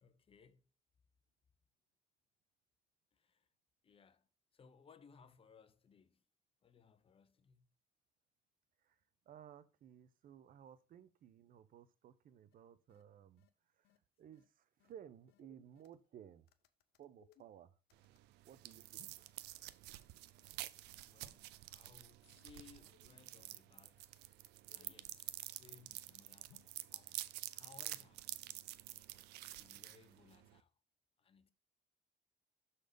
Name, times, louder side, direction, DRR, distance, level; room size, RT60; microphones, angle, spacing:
voice 1, 0.0-0.7 3.1-3.5 3.8-6.3 6.6-7.7 21.1-24.1 24.7-28.3 29.5-30.7 31.2-31.5, left 6 dB, 35° left, 0.7 m, -64 dB
voice 2, 9.3-13.5 13.7-13.9 14.2-16.5 17.0-17.8 18.4-19.3, right 9 dB, 55° right, 0.8 m, -58 dB
sound 1, 12.5-12.6 12.9-13.0 13.4-13.5 13.8-14.0 14.3-14.4 14.8-14.9 15.3-16.1 16.5-18.3 19.0-19.3 19.5-19.6 19.9-20.1 20.4-20.5 20.9-21.0 21.4-21.5 21.8-22.0 22.3-22.4 22.8-23.6 24.0-25.8 26.5-26.8, left 11 dB, 70° left, 0.7 m, -70 dB
sound 2, 17.9-30.6, right 16 dB, 90° right, 0.5 m, -49 dB
6.5 x 4.2 x 5.2 m
cardioid pair, 110°, 17 cm